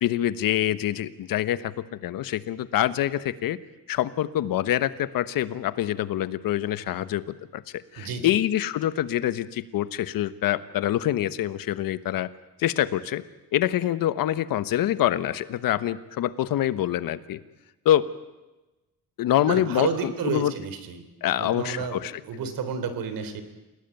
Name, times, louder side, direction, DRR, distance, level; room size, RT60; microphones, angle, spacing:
voice 1, 0.0-3.6 3.9-7.6 7.9-12.3 12.6-13.2 13.5-17.4 17.8-18.1 19.2-20.5 21.2-22.1, left 12 dB, 75° left, 13 dB, 1.3 m, -25 dB
voice 2, 8.0-8.3 19.4-21.0 21.4-22.0 22.3-23.4, right 6 dB, 75° right, 10 dB, 3.8 m, -31 dB
28.5 x 18.5 x 9.2 m, 1.1 s
cardioid pair, 150°, 34 cm